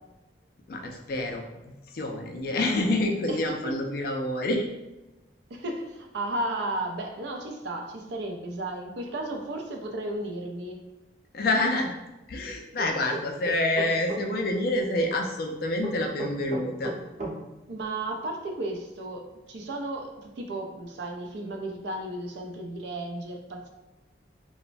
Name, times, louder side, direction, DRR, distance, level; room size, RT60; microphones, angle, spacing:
voice 1, 0.7-4.6 11.3-11.9 12.3-16.9, left 1 dB, 50° left, 3 dB, 0.4 m, -27 dB
voice 2, 3.3-3.7 5.5-10.8 17.7-23.7, right 1 dB, 70° right, 2 dB, 0.4 m, -34 dB
sound 1, 12.8-14.2 15.8-17.4, right 2 dB, 40° right, 0.8 m, -34 dB
3.0 x 2.0 x 2.5 m, 1.1 s
head